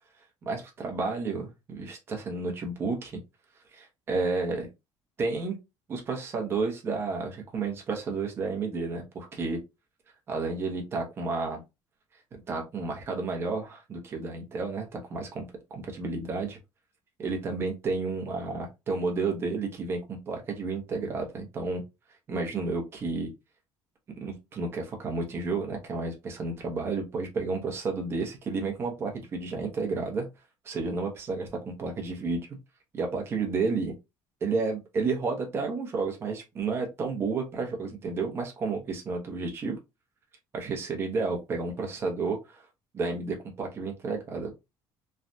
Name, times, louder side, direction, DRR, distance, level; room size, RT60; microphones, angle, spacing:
voice 1, 0.5-3.2 3.7-4.7 5.2-5.6 5.9-9.6 10.3-11.6 12.5-16.6 17.2-21.8 22.3-23.3 24.2-30.3 30.6-32.4 32.9-33.9 34.4-39.8 40.5-42.7 42.9-44.5, right 4 dB, 30° right, 1 dB, 0.9 m, -31 dB
3.3 x 2.3 x 2.6 m, 0.24 s
cardioid pair, 165°, 9 cm